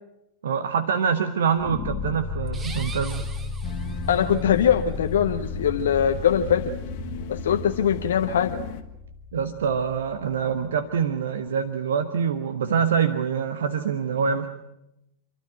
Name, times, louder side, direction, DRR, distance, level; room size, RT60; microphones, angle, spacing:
voice 1, 0.4-3.2 9.3-14.5, right 7 dB, 65° right, 10 dB, 1.1 m, -25 dB
sound 1, 1.6-10.7, left 4 dB, 30° left, 2.0 m, -35 dB
sound 2, 2.5-4.5, right 4 dB, 20° right, 1.9 m, -42 dB
sound 3, 3.6-8.8, left 2 dB, 45° left, 1.8 m, -35 dB
voice 2, 4.1-6.7 7.3-8.6, left 9 dB, 65° left, 6 dB, 0.9 m, -22 dB
28.0 x 12.5 x 9.1 m, 0.87 s
figure-of-eight pair, 90°, 0 cm